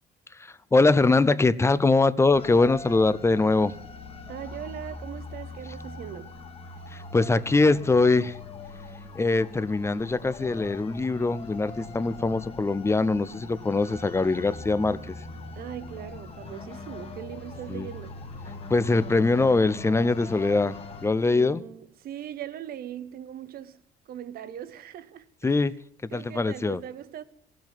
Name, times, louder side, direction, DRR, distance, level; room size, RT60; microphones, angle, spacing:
voice 1, 0.4-3.7 6.9-8.4 9.1-15.0 17.7-17.9 18.7-20.8 21.0-21.6 25.4-25.7 26.1-26.8, left 3 dB, 15° left, 0.6 m, -22 dB
sound 1, 2.3-21.1, left 3 dB, 35° left, 1.8 m, -41 dB
voice 2, 4.3-6.4 15.6-18.2 21.2-25.6 26.1-27.2, right 10 dB, 65° right, 1.0 m, -40 dB
sound 2, 11.4-21.2, left 7 dB, 85° left, 1.8 m, -49 dB
16.0 x 7.6 x 9.3 m
cardioid pair, 110°, 17 cm